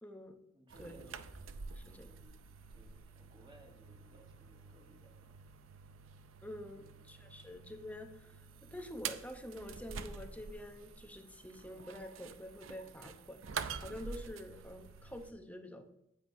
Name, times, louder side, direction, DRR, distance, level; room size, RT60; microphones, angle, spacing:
voice 1, 0.0-0.4 0.8-1.0 1.7-2.1 6.4-8.5 8.7-13.4 13.8-15.9, left 1 dB, 10° left, 6 dB, 0.8 m, -47 dB
voice 2, 0.5-1.2 1.9-2.3 2.7-5.4 6.7-7.0 7.4-7.5, right 1 dB, 25° right, 3 dB, 1.3 m, -62 dB
sound 1, 0.7-15.3, right 6 dB, 80° right, 0.5 m, -48 dB
9.9 x 8.0 x 2.6 m, 0.81 s
head